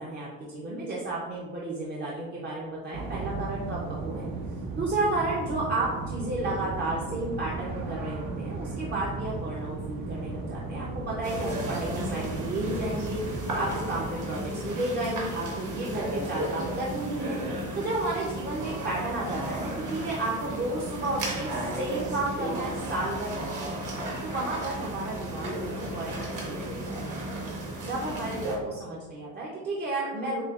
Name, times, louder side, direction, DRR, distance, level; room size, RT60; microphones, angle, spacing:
voice 1, 0.0-4.3 4.8-13.2 13.6-23.6 24.2-27.5 27.9-30.4, right 2 dB, 30° right, -4 dB, 0.5 m, -32 dB
sound 1, 2.9-14.1, right 3 dB, 75° right, 0.7 m, -36 dB
sound 2, 11.2-28.6, right 1 dB, 55° right, 1.1 m, -34 dB
6.3 x 2.2 x 2.3 m, 1.2 s
cardioid pair, 155°, 36 cm